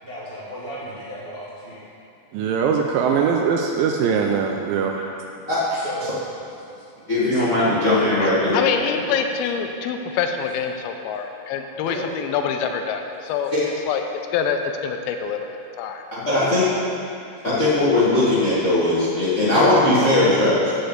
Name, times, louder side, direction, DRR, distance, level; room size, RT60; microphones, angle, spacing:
voice 1, 0.0-1.9 3.1-3.3 5.7-6.3 7.0-7.6 8.3-9.4 11.8-12.1 16.4-16.6, right 1 dB, 50° right, -10 dB, 0.6 m, -34 dB
voice 2, 2.3-4.9, right 6 dB, 85° right, 2 dB, 2.0 m, -21 dB
voice 3, 5.5-5.8 7.1-8.6 13.5-13.6 16.2-16.6 17.4-20.7, left 2 dB, 60° left, -10 dB, 0.7 m, -19 dB
voice 4, 8.2-13.5 13.9-14.0 14.3-15.5 15.8-16.0, left 7 dB, 80° left, 5 dB, 2.4 m, -25 dB
8.1 x 6.7 x 7.9 m, 2.7 s
omnidirectional pair, 4.6 m